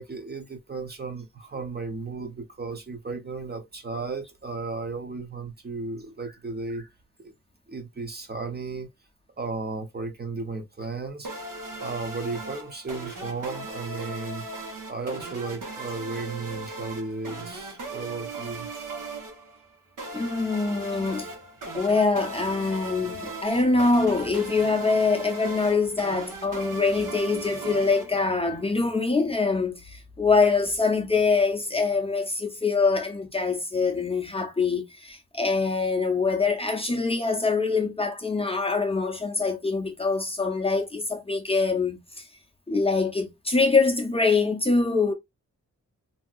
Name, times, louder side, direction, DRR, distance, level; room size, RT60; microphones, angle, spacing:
voice 1, 0.0-6.9 7.2-7.3 7.7-8.9 9.4-11.5 11.8-14.5 14.9-18.7, right 3 dB, 35° right, 0.6 m, -34 dB
sound 1, 11.2-28.7, right 3 dB, 85° right, 1.2 m, -38 dB
voice 2, 20.1-21.3 21.7-42.2 42.7-45.1, left 4 dB, 20° left, 0.6 m, -24 dB
3.4 x 2.7 x 2.3 m
wide cardioid pair, 150°, 31 cm